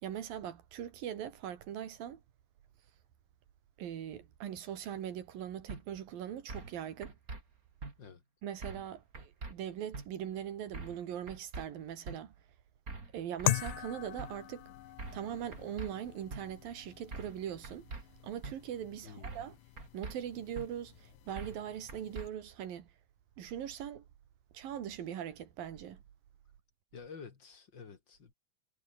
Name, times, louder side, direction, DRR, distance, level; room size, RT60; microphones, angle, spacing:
voice 1, 0.0-2.2 3.8-7.2 8.4-12.3 13.1-14.6 15.1-17.9 18.2-19.6 19.9-22.9 23.4-24.0 24.5-26.0, right 10 dB, 90° right, 3.9 m, -41 dB
sound 1, 5.7-5.8 6.5-6.7 7.0-7.4 7.8-7.9 8.6-8.9 9.1-9.5 9.9-10.1 10.7-11.0 11.3-11.7 12.1-12.2 12.9-13.1 13.4-13.8 14.2-14.3 15.0-15.3 15.5-15.9 16.3-16.4 17.1-17.4 17.6-18.0 18.4-18.6 19.2-19.5 19.8-20.2 20.6-20.7 21.4-21.6 21.9-22.3, right 3 dB, 25° right, 3.7 m, -43 dB
sound 2, 13.5-22.3, left 15 dB, 75° left, 2.4 m, -41 dB
voice 2, 26.9-28.3, left 5 dB, 35° left, 2.4 m, -50 dB
omnidirectional pair, 3.9 m